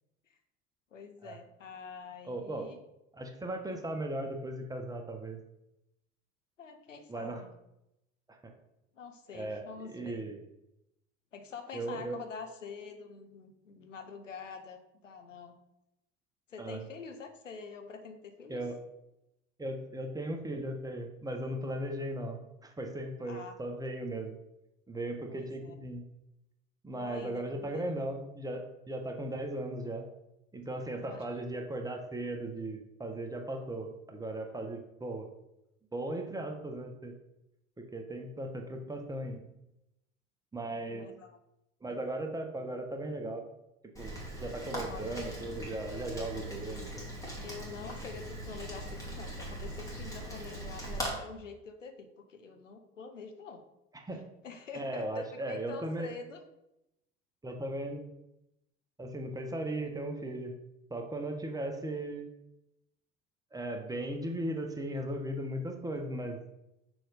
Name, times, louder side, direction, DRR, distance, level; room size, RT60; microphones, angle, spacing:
voice 1, 0.9-2.8 6.6-7.5 8.9-10.2 11.3-15.6 16.5-18.6 23.3-23.5 25.3-25.8 26.9-27.9 30.9-31.3 40.9-41.4 44.7-45.2 47.4-53.6 54.4-56.4, left 5 dB, 85° left, 6 dB, 0.8 m, -46 dB
voice 2, 2.2-2.7 3.1-5.4 7.1-7.4 8.3-8.5 9.3-10.4 11.7-12.2 16.6-16.8 18.5-18.8 19.6-24.4 24.9-26.0 26.8-30.1 30.5-35.3 35.9-37.1 37.8-39.4 40.5-41.1 41.8-43.4 44.0-47.0 53.9-54.2 54.7-56.1 57.4-58.1 59.0-60.5 60.9-62.3 63.5-66.4, right 1 dB, 10° right, 3 dB, 1.1 m, -37 dB
Rain, 43.9-51.1, right 1 dB, 10° left, 2.4 m, -40 dB
6.2 x 3.9 x 4.9 m, 0.87 s
figure-of-eight pair, 65°, 37 cm